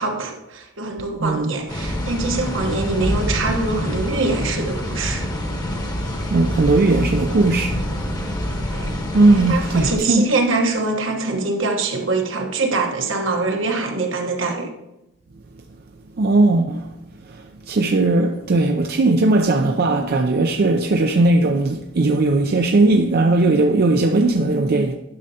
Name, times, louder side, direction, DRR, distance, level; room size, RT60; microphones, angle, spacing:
voice 1, 0.0-5.3 8.7-9.0 9.3-14.7, right 3 dB, 75° right, 1.1 m, -24 dB
voice 2, 1.2-1.5 6.3-7.8 9.1-10.3 16.2-16.9 17.2-24.9, right 2 dB, 50° right, 0.4 m, -18 dB
sound 1, 1.7-10.0, equal, 20° left, 1.0 m, -26 dB
10.5 x 6.5 x 2.8 m
head